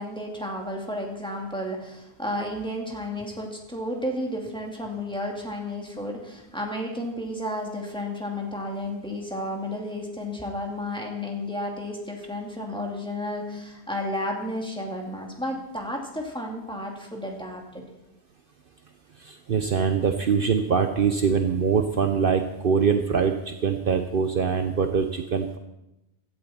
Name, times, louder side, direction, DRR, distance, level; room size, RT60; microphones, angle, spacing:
voice 1, 0.0-17.8, left 1 dB, 5° left, -1 dB, 2.3 m, -32 dB
voice 2, 19.2-25.6, right 6 dB, 55° right, 6 dB, 0.9 m, -23 dB
16.0 x 12.0 x 4.3 m, 0.91 s
omnidirectional pair, 1.1 m